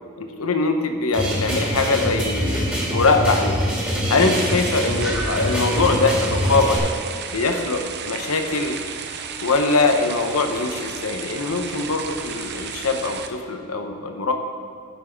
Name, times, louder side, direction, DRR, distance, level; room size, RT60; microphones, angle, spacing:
voice 1, 0.2-3.6 4.1-6.9 7.3-8.8 9.4-14.3, left 3 dB, 85° left, 5 dB, 0.9 m, -22 dB
sound 1, 1.1-6.8, equal, 5° right, 2.3 m, -24 dB
sound 2, 4.2-13.3, right 6 dB, 50° right, 0.6 m, -33 dB
11.0 x 6.3 x 4.5 m, 2.1 s
head